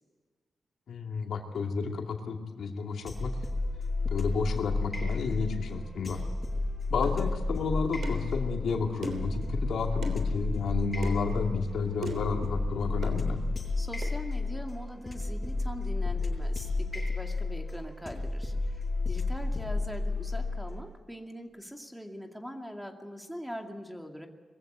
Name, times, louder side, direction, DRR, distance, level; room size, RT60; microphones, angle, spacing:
voice 1, 0.9-3.3 4.0-6.2 6.9-13.4, left 4 dB, 80° left, 3 dB, 2.6 m, -31 dB
sound 1, 3.1-20.8, left 3 dB, 20° left, 7.1 m, -32 dB
sound 2, 7.0-7.2 8.0-8.3 9.0-9.3 10.0-10.2 11.0-11.2 12.0-12.3 13.0-13.2 14.0-14.2, right 2 dB, 70° right, 3.2 m, -37 dB
voice 2, 13.8-24.3, equal, ahead, 3 dB, 2.3 m, -42 dB
22.0 x 15.5 x 9.2 m, 1.5 s
wide cardioid pair, 140°, 0 cm